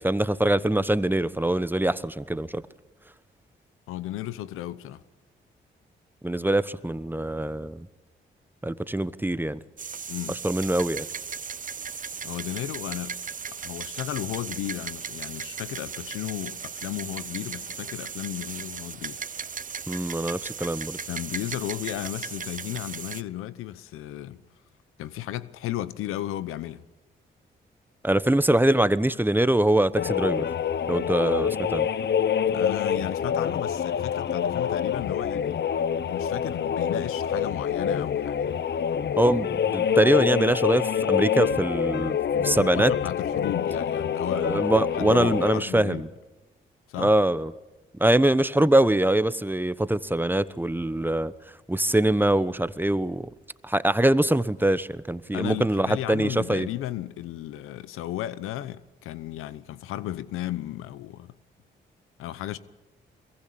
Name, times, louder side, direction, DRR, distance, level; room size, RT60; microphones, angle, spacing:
voice 1, 0.0-2.6 6.2-7.9 8.6-9.6 10.4-11.1 19.9-21.0 28.0-30.4 30.9-31.9 39.2-42.9 44.4-46.1 47.0-47.5 48.0-51.3 51.7-53.3 53.6-56.7, right 1 dB, 10° right, 1.1 m, -23 dB
voice 2, 3.9-5.0 10.1-10.4 12.2-13.2 13.6-19.2 21.1-24.4 25.0-26.8 32.5-35.5 36.1-38.6 42.6-46.1 46.9-47.1 55.3-61.3 62.2-62.6, left 13 dB, 85° left, 0.8 m, -34 dB
sound 1, 9.8-23.2, right 6 dB, 40° right, 0.8 m, -37 dB
sound 2, 30.0-45.6, left 8 dB, 55° left, 0.9 m, -26 dB
23.0 x 22.0 x 8.7 m
supercardioid pair, 50°, 21 cm